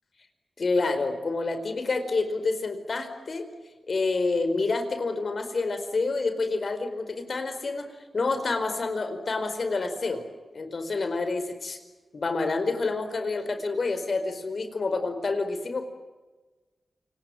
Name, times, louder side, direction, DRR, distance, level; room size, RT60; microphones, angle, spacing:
voice 1, 0.6-3.5 3.9-7.9 8.1-10.2 10.5-11.8 12.1-15.9, left 3 dB, 60° left, 8 dB, 4.8 m, -28 dB
28.0 x 20.0 x 10.0 m, 1.2 s
cardioid pair, 45°, 0 cm